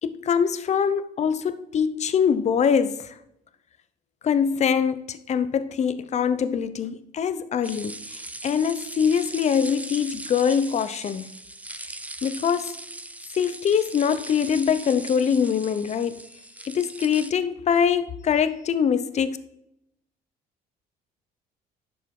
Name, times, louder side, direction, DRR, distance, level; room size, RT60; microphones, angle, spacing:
voice 1, 0.0-3.1 4.2-11.3 12.2-12.7 13.3-16.2 16.6-19.4, left 7 dB, 40° left, 0.8 m, -23 dB
sound 1, 7.6-17.3, right 2 dB, 10° right, 0.6 m, -39 dB
11.0 x 7.3 x 4.8 m
cardioid pair, 110°, 17 cm